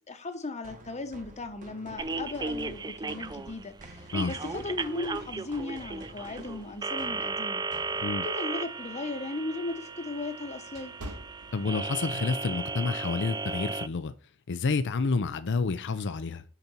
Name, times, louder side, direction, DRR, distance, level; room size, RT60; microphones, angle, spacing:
voice 1, 0.1-7.6 8.2-10.9, left 2 dB, 30° left, 1.0 m, -37 dB
sound 1, 0.6-8.5, right 1 dB, 35° right, 1.5 m, -49 dB
sound 2, 2.0-13.9, right 3 dB, 20° right, 0.3 m, -35 dB
sound 3, 8.5-12.2 12.6-12.9 13.5-13.7, right 1 dB, 90° right, 1.5 m, -46 dB
voice 2, 11.5-14.1 14.5-16.4, left 4 dB, 55° left, 0.5 m, -29 dB
6.7 x 5.9 x 4.3 m
head